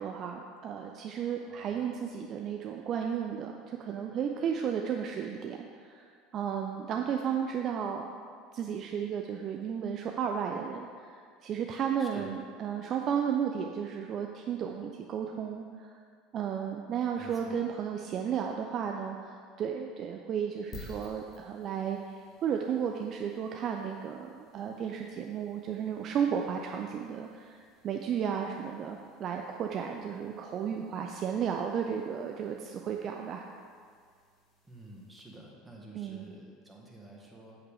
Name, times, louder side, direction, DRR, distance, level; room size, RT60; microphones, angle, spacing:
voice 1, 0.0-6.0 6.3-8.0 8.5-16.0 16.3-27.6 27.8-33.5 35.9-36.3, right 8 dB, 40° right, 2 dB, 0.5 m, -33 dB
voice 2, 1.4-1.8 12.0-12.3 17.2-17.7 34.6-37.6, right 2 dB, 10° right, -2 dB, 1.8 m, -50 dB
sound 1, 20.7-35.5, left 3 dB, 40° left, 1.7 m, -56 dB
8.4 x 8.0 x 3.6 m, 2.1 s
figure-of-eight pair, 70°, 0 cm